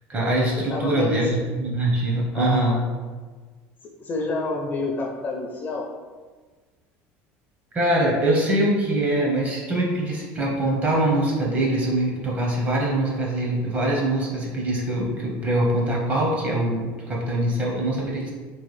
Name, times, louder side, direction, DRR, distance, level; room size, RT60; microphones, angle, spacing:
voice 1, 0.1-2.8 7.7-18.3, right 1 dB, 30° right, -2 dB, 0.8 m, -23 dB
voice 2, 0.7-1.4 2.3-2.8 4.0-5.9, left 2 dB, 30° left, 0 dB, 0.4 m, -28 dB
3.1 x 2.2 x 3.1 m, 1.4 s
cardioid pair, 130°, 6 cm